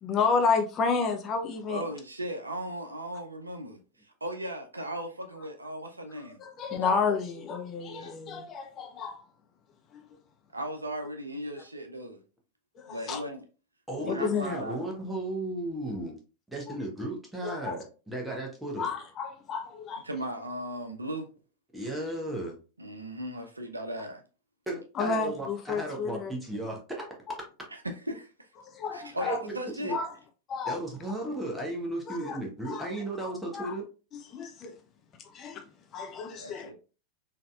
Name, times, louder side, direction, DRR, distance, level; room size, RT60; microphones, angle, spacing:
voice 1, 0.0-1.8 6.4-9.2 12.8-13.2 14.0-14.5 16.7-16.8 17.4-17.8 18.8-20.0 25.0-26.3 28.6-29.4 29.9-30.1 30.5-30.8 32.1-32.4 32.7-32.9 33.2-33.7 34.1-34.8 35.3-35.6 35.9-36.7, left 5 dB, 30° left, 0.5 m, -31 dB
voice 2, 1.7-6.4 7.8-8.2 10.5-12.2 12.9-13.4 14.0-14.8 20.0-21.3 22.8-24.2 27.7-28.5 28.9-29.9 36.3-36.8, right 1 dB, 80° right, 0.5 m, -37 dB
voice 3, 13.9-16.1 16.5-18.9 21.7-22.6 24.7-27.0 29.2-29.6 29.8-29.9 30.7-33.8, right 1 dB, 5° right, 1.1 m, -35 dB
3.9 x 2.8 x 2.3 m
figure-of-eight pair, 90°, 0 cm